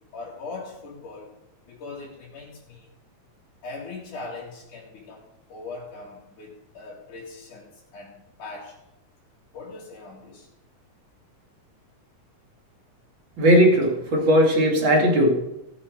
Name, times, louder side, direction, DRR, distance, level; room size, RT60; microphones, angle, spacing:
voice 1, 0.1-1.3 1.7-2.9 3.6-8.8 9.5-10.5, left 3 dB, 85° left, -7 dB, 3.7 m, -40 dB
voice 2, 13.4-15.3, equal, 40° right, -1 dB, 3.1 m, -18 dB
17.0 x 6.4 x 5.2 m, 0.91 s
omnidirectional pair, 3.4 m